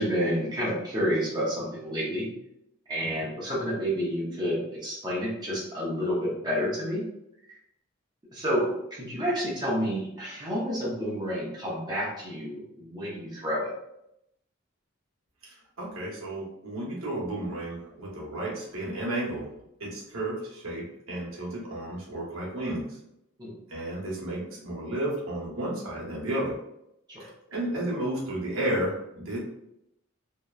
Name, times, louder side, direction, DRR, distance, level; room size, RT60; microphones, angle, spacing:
voice 1, 0.0-2.3 2.9-7.0 7.5-7.6 8.3-13.7 23.4-23.6 27.1-27.3, equal, 20° right, -6 dB, 0.6 m, -29 dB
voice 2, 15.4-19.5 19.8-23.0 23.7-26.5 27.2-29.4, right 1 dB, 70° right, -5 dB, 0.9 m, -32 dB
2.8 x 2.1 x 2.3 m, 0.82 s
head